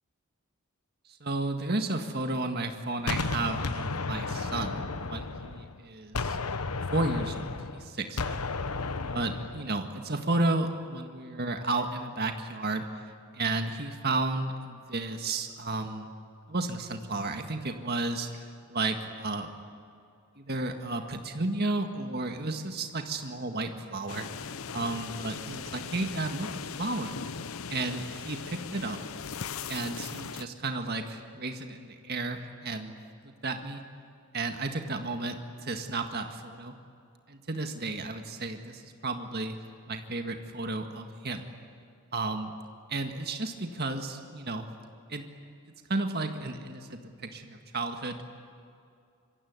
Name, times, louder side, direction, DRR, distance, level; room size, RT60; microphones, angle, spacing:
voice 1, 1.2-6.4 6.9-8.4 9.1-13.0 13.3-16.1 16.5-19.5 20.4-24.3 24.7-27.2 27.7-29.0 29.7-32.9 33.2-33.8 34.3-36.7 37.3-39.6 39.9-41.5 42.1-42.5 42.9-44.7 45.1-45.3 45.9-48.2, right 2 dB, 45° right, 5 dB, 1.8 m, -33 dB
Gunshot gunfire, 3.1-5.8 6.1-9.7, left 3 dB, 90° left, 1.2 m, -33 dB
sound 1, 24.1-30.5, left 6 dB, 70° left, 0.7 m, -39 dB
26.5 x 23.5 x 9.7 m, 2.5 s
head